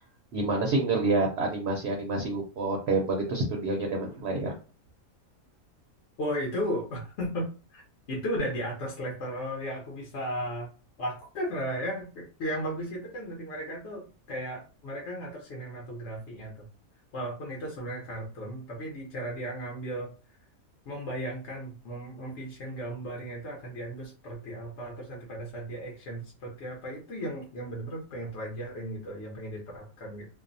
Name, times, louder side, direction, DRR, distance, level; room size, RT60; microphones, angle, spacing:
voice 1, 0.3-4.5, right 3 dB, 65° right, 1 dB, 0.7 m, -28 dB
voice 2, 6.2-7.8 8.1-10.7 11.0-16.7 17.1-20.1 20.9-30.3, equal, 60° left, -1 dB, 0.9 m, -35 dB
2.6 x 2.0 x 2.5 m, 0.35 s
omnidirectional pair, 1.5 m